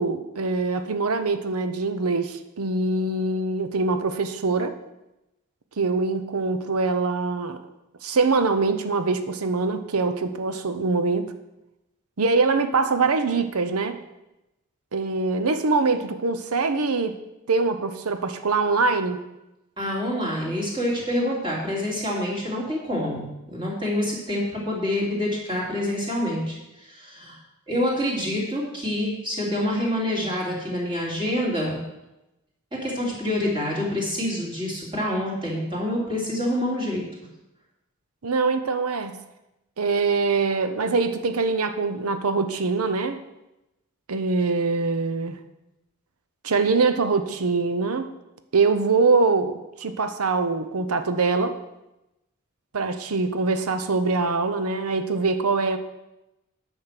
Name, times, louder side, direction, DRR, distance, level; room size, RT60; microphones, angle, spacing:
voice 1, 0.0-4.8 5.8-7.6 8.0-11.3 12.2-14.0 14.9-17.2 17.5-19.2 38.2-39.2 39.8-43.2 44.1-45.4 46.4-48.0 48.5-51.6 52.7-55.8, right 4 dB, 90° right, 9 dB, 0.8 m, -23 dB
voice 2, 19.8-27.4 27.7-31.8 32.7-37.0, left 1 dB, 25° right, -5 dB, 3.1 m, -27 dB
9.9 x 6.4 x 5.9 m, 0.94 s
head